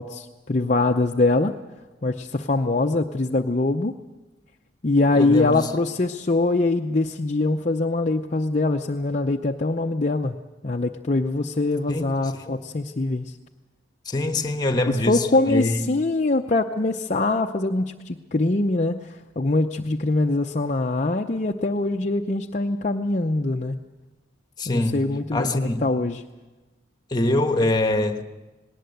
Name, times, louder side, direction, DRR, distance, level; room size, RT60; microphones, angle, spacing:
voice 1, 0.0-1.5 2.0-3.9 4.8-10.4 10.6-13.3 14.9-23.8 24.7-26.2, left 2 dB, 40° left, 0.7 m, -23 dB
voice 2, 5.1-5.7 11.9-12.6 14.0-15.8 24.6-25.0 25.3-25.8 27.1-28.2, left 2 dB, 20° left, 1.2 m, -24 dB
19.5 x 18.0 x 7.9 m
head